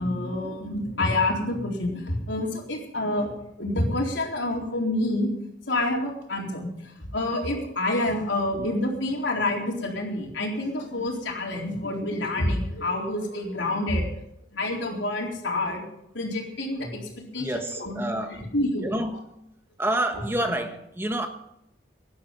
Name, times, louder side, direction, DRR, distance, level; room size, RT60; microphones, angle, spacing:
voice 1, 0.0-5.3 5.7-14.1 14.5-15.8 16.1-17.0 17.3-18.0 18.3-18.9, left 1 dB, 75° left, 0 dB, 3.9 m, -28 dB
voice 2, 17.4-18.4 18.8-19.5 19.8-21.3, right 1 dB, 10° right, 6 dB, 1.3 m, -28 dB
17.5 x 11.0 x 5.5 m, 0.79 s
head